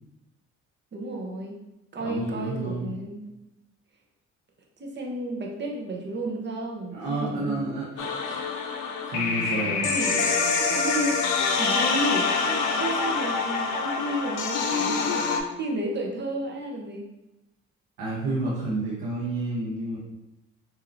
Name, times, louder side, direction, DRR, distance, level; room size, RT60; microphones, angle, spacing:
voice 1, 0.9-1.6 1.9-3.3 4.8-7.6 9.5-15.3 15.6-17.1, right 1 dB, 35° right, 0 dB, 0.8 m, -32 dB
voice 2, 2.0-2.9 6.9-8.4 9.1-9.9 18.0-20.0, right 2 dB, 80° right, -6 dB, 1.0 m, -30 dB
sound 1, 8.0-15.4, left 4 dB, 80° left, 0.5 m, -26 dB
4.4 x 2.8 x 2.5 m, 0.95 s
cardioid pair, 90°, 30 cm